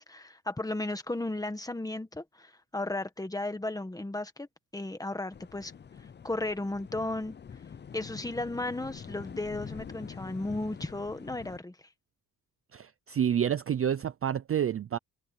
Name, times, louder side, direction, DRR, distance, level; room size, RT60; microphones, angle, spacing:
voice 1, 0.0-4.5 4.7-5.7 6.2-7.3 7.9-11.8, left 2 dB, 10° left, 1.4 m, -34 dB
sound 1, 5.3-11.6, left 7 dB, 30° left, 0.5 m, -45 dB
voice 2, 12.7-15.0, right 9 dB, 35° right, 0.4 m, -29 dB
wide cardioid pair, 165°, 38 cm